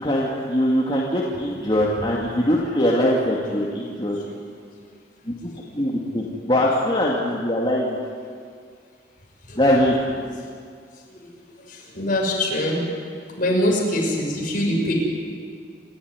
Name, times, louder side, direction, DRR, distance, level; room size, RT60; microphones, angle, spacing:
voice 1, 0.0-4.2 5.3-8.0 9.6-10.0, equal, 30° left, -4 dB, 2.4 m, -22 dB
voice 2, 11.7-12.8 13.4-14.9, left 1 dB, 50° left, -1 dB, 6.5 m, -23 dB
28.5 x 13.0 x 9.8 m, 2.1 s
head